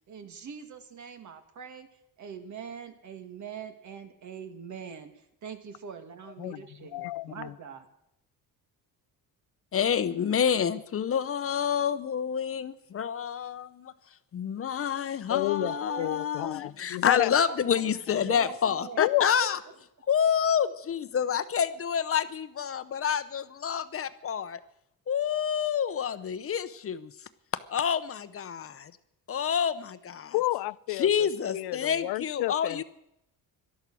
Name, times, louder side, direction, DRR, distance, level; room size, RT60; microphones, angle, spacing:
voice 1, 0.1-1.9 2.2-7.9 15.6-16.5 17.5-17.8 18.2-19.0, right 6 dB, 50° right, 2.1 m, -42 dB
voice 2, 6.9-7.5 15.3-17.3 19.0-19.3 30.3-31.3 31.5-32.8, left 19 dB, 80° left, 0.6 m, -30 dB
voice 3, 9.7-13.9 14.3-19.6 20.1-24.6 25.1-27.1 27.7-28.9 29.3-30.3 30.9-32.8, left 8 dB, 35° left, 0.8 m, -28 dB
18.5 x 12.5 x 6.2 m
cardioid pair, 150°, 37 cm